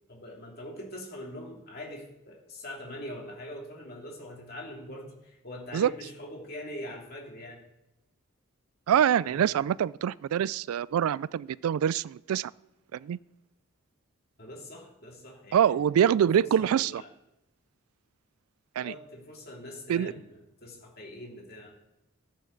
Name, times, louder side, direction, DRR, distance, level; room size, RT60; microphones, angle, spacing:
voice 1, 0.1-7.6 9.2-9.5 14.4-15.7 16.0-17.1 18.8-21.7, left 1 dB, 45° left, -1 dB, 2.5 m, -43 dB
voice 2, 8.9-12.5 12.9-13.2 15.5-17.0 18.8-18.9 19.9-20.1, right 9 dB, 90° right, 18 dB, 0.3 m, -25 dB
13.0 x 8.9 x 3.9 m, 0.94 s
head